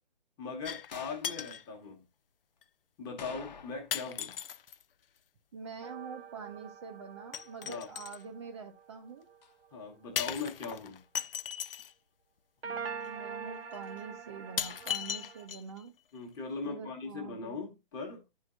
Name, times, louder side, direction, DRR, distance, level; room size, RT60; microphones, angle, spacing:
voice 1, 0.4-2.0 3.0-4.3 7.6-7.9 9.7-11.0 16.1-18.2, left 4 dB, 15° left, 1.3 m, -40 dB
sound 1, 0.6-1.0 1.2-1.6 2.6-2.7 3.9-4.8 7.3-8.2 10.2-11.9 13.0-13.1 13.7-13.8 14.6-15.8 16.2-16.3, left 9 dB, 70° left, 0.6 m, -37 dB
sound 2, 0.9-1.4 3.2-4.0 4.3-4.4 9.4-9.5, left 6 dB, 45° left, 1.1 m, -47 dB
voice 2, 5.5-9.3 12.6-15.9 16.6-17.6, right 6 dB, 30° right, 0.6 m, -45 dB
sound 3, 5.8-9.4 12.6-15.5, right 6 dB, 85° right, 1.1 m, -44 dB
12.0 x 4.5 x 2.4 m
hypercardioid pair, 160°, 30 cm